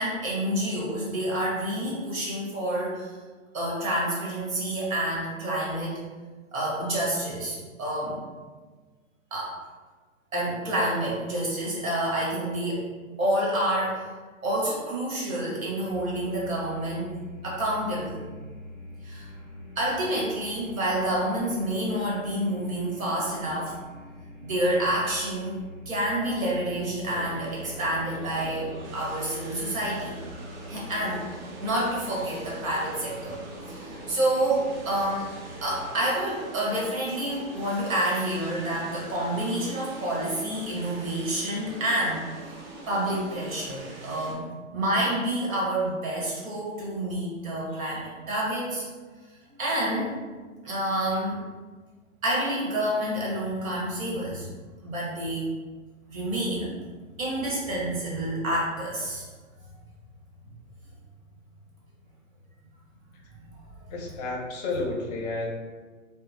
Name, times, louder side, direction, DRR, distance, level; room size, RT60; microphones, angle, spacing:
voice 1, 0.0-3.1 3.5-6.0 6.5-8.2 9.3-9.6 10.3-12.9 13.2-14.0 14.4-17.1 17.4-18.2 19.0-19.3 19.8-23.7 24.4-25.6 25.8-30.2 30.7-31.2 31.6-33.4 33.7-35.3 35.6-42.6 42.9-44.5 44.7-48.9 49.6-50.2 50.6-51.4 52.2-54.5 54.8-55.5 56.1-56.7 57.2-59.3, right 1 dB, 80° right, -5 dB, 1.3 m, -28 dB
sound 1, 15.9-35.8, left 1 dB, 15° right, 1.1 m, -44 dB
sound 2, 27.1-44.3, right 2 dB, 45° right, 0.7 m, -43 dB
voice 2, 63.9-65.5, left 2 dB, 30° left, -1 dB, 0.5 m, -31 dB
2.8 x 2.1 x 2.6 m, 1.4 s
hypercardioid pair, 125°, 40 cm